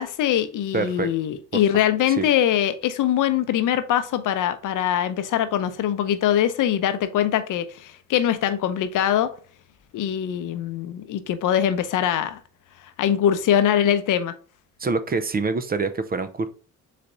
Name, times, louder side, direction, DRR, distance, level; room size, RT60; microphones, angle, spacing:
voice 1, 0.0-9.3 9.9-12.4 13.0-14.3, left 10 dB, 70° left, 0.7 m, -22 dB
voice 2, 0.7-1.1 2.1-2.3 14.8-16.5, right 4 dB, 30° right, 0.5 m, -25 dB
4.1 x 3.3 x 3.8 m
supercardioid pair, 70°, 33 cm